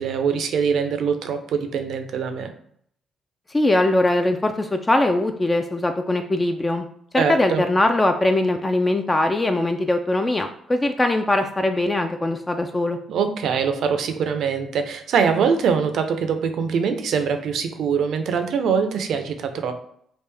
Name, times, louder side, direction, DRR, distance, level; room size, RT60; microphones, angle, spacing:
voice 1, 0.0-2.5 7.1-7.6 13.1-19.7, right 6 dB, 70° right, 8 dB, 0.5 m, -23 dB
voice 2, 3.5-6.9 7.1-13.0, left 1 dB, 20° left, 6 dB, 0.3 m, -21 dB
3.5 x 2.5 x 3.3 m, 0.66 s
cardioid pair, 90°, 0 cm